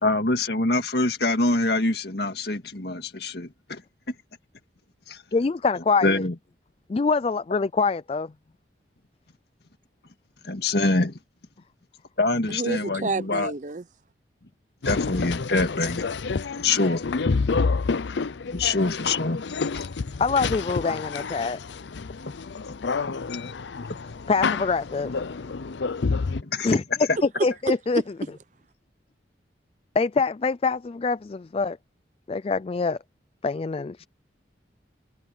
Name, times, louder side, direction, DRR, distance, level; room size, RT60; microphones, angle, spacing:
voice 1, 0.0-3.8 4.1-4.2 5.1-5.2 5.7-6.4 10.4-11.1 12.2-13.5 14.9-16.1 16.6-17.0 18.5-19.9 22.3-22.4 23.1-23.5 23.9-24.0 26.4-26.7 27.1-27.2, left 2 dB, 60° left, 2.0 m, -25 dB
voice 2, 5.3-6.1 6.9-8.3 20.2-21.6 24.3-25.1 26.6-26.8 27.4-28.0 30.0-31.8 32.3-33.0 33.4-34.1, left 4 dB, 30° left, 0.3 m, -24 dB
voice 3, 12.5-13.8 27.4-28.3, right 3 dB, 40° right, 0.6 m, -29 dB
sound 1, 14.8-26.4, left 4 dB, 80° left, 0.6 m, -29 dB
head